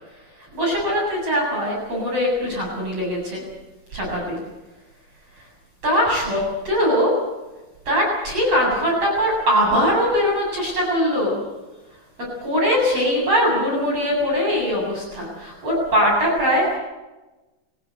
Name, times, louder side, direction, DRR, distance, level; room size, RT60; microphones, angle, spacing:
voice 1, 0.4-3.4 3.9-4.4 5.4-5.5 5.8-7.1 7.8-11.4 12.2-16.8, equal, 30° right, -3 dB, 8.5 m, -21 dB
24.0 x 19.0 x 8.0 m, 1.1 s
omnidirectional pair, 5.4 m